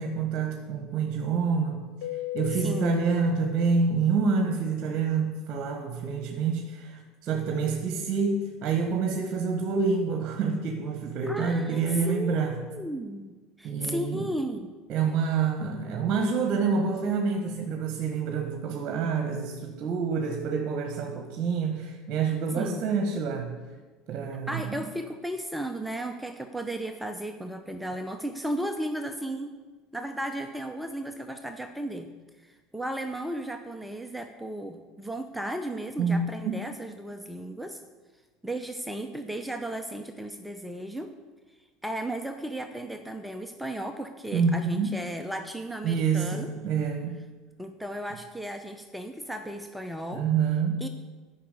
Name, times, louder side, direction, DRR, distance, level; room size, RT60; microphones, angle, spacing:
voice 1, 0.0-1.8 2.3-12.6 13.6-14.3 14.9-23.5 24.1-24.8 36.0-36.5 44.3-44.9 45.8-47.2 50.1-50.8, right 5 dB, 50° right, 4 dB, 1.4 m, -27 dB
Keyboard (musical), 2.0-4.5, left 12 dB, 80° left, 1.1 m, -37 dB
voice 2, 2.5-3.0 11.3-14.7 22.6-22.8 24.5-29.6 29.9-32.1 32.4-37.8 38.4-41.1 41.8-46.5 47.6-50.3 50.8-50.9, right 1 dB, 5° right, 6 dB, 0.7 m, -35 dB
10.0 x 5.8 x 8.3 m, 1.3 s
supercardioid pair, 95°, 0 cm